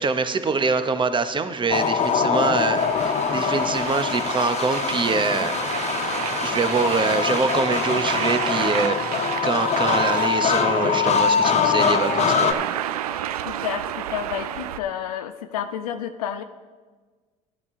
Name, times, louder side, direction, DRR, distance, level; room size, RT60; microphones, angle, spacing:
voice 1, 0.0-5.5 6.4-9.0 9.4-12.6, right 4 dB, 25° right, 9 dB, 0.9 m, -24 dB
sound 1, 1.7-12.5, left 6 dB, 40° left, 0.8 m, -23 dB
sound 2, 2.8-14.8, right 11 dB, 90° right, 0.4 m, -31 dB
voice 2, 13.5-16.4, left 9 dB, 85° left, 9 dB, 0.5 m, -30 dB
12.0 x 8.4 x 3.7 m, 1.4 s
hypercardioid pair, 70°, 19 cm